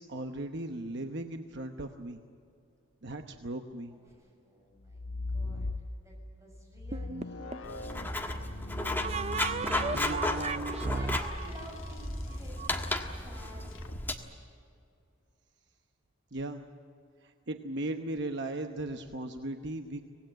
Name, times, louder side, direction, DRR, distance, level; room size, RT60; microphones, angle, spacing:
voice 1, 0.0-2.2 3.0-4.0 16.3-16.6 17.2-20.0, right 1 dB, 55° right, 6 dB, 1.0 m, -37 dB
voice 2, 3.9-7.8 8.6-9.5 10.5-12.9 13.2-13.8, equal, 15° right, -1 dB, 6.8 m, -52 dB
sound 1, 4.8-6.2 6.7-12.2 13.7-14.1, left 2 dB, 70° left, 1.2 m, -40 dB
sound 2, 6.9-7.8 9.0-12.7, right 4 dB, 30° right, 0.5 m, -35 dB
Writing, 7.6-14.1, left 1 dB, 10° left, 1.5 m, -34 dB
25.0 x 19.0 x 9.2 m, 2.6 s
head